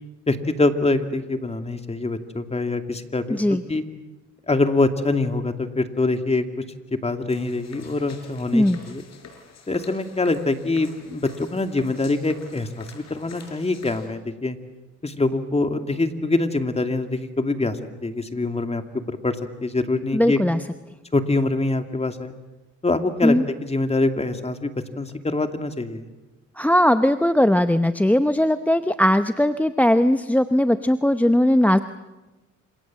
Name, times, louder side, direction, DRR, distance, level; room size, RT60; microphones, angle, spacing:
voice 1, 0.3-3.8 4.5-6.5 7.0-9.0 9.7-14.6 15.0-18.8 19.1-20.4 21.1-22.3 22.8-26.0, left 2 dB, 20° left, 7 dB, 2.5 m, -24 dB
voice 2, 3.3-3.6 8.5-8.8 20.1-20.6 23.2-23.4 26.6-31.8, left 1 dB, 5° left, 11 dB, 0.8 m, -19 dB
sound 1, 7.3-14.1, left 5 dB, 60° left, 5.9 m, -46 dB
28.5 x 27.0 x 7.6 m, 1.1 s
cardioid pair, 90°, 30 cm